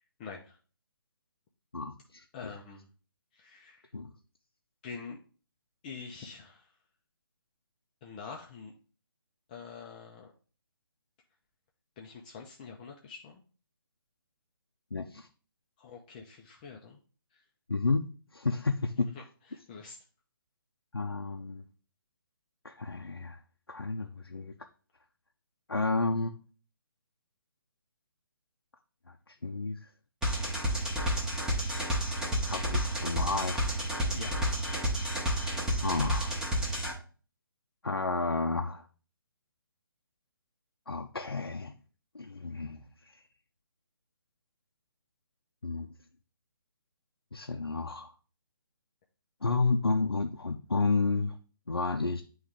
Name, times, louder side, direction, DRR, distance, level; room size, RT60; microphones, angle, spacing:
voice 1, 0.2-0.6 2.3-2.9 3.3-3.9 4.8-5.2 5.8-6.7 8.0-8.7 9.5-10.3 12.0-13.4 15.8-17.0 17.3-17.4 19.1-19.2 19.5-20.0 34.1-34.4, left 5 dB, 20° left, 0.5 m, -45 dB
voice 2, 1.7-2.5 3.9-4.1 14.9-15.3 17.7-18.0 18.3-19.1 20.9-21.6 22.6-23.4 23.7-24.5 25.7-26.3 29.3-29.8 32.5-33.7 35.8-36.3 37.8-38.8 40.9-41.7 42.1-43.2 45.6-45.9 47.3-48.1 49.4-51.4 51.7-52.2, left 3 dB, 85° left, 0.6 m, -31 dB
sound 1, 30.2-36.9, equal, 5° right, 1.0 m, -30 dB
8.4 x 3.1 x 3.6 m
figure-of-eight pair, 145°, 12 cm